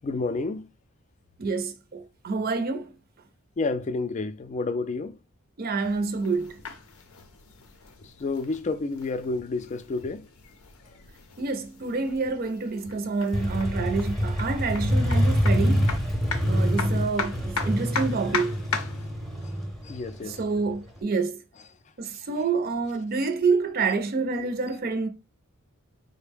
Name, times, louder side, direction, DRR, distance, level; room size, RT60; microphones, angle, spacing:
voice 1, 0.0-0.6 3.6-5.1 8.0-10.3 15.8-15.9 19.4-19.5 19.8-20.4, left 3 dB, 35° left, 0.3 m, -30 dB
voice 2, 1.4-2.9 5.6-6.6 11.4-15.9 16.5-18.6 20.4-21.4 22.0-25.1, right 4 dB, 45° right, 0.5 m, -27 dB
sound 1, 5.8-19.1, left 5 dB, 80° left, 0.6 m, -38 dB
Motorcycle, 13.3-21.0, equal, ahead, 0.7 m, -26 dB
3.8 x 2.1 x 3.3 m
head